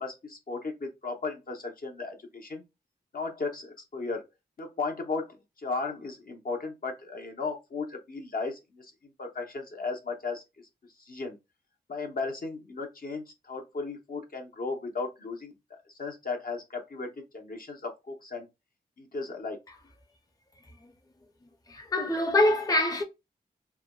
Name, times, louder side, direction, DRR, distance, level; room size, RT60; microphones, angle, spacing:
voice 1, 0.0-2.6 3.1-4.2 4.6-10.4 11.0-11.4 11.9-15.5 15.9-18.5 19.0-19.6, left 4 dB, 60° left, 0.8 m, -35 dB
voice 2, 21.7-23.0, left 1 dB, 20° left, 0.6 m, -24 dB
3.3 x 2.1 x 2.3 m
wide cardioid pair, 65°, 17 cm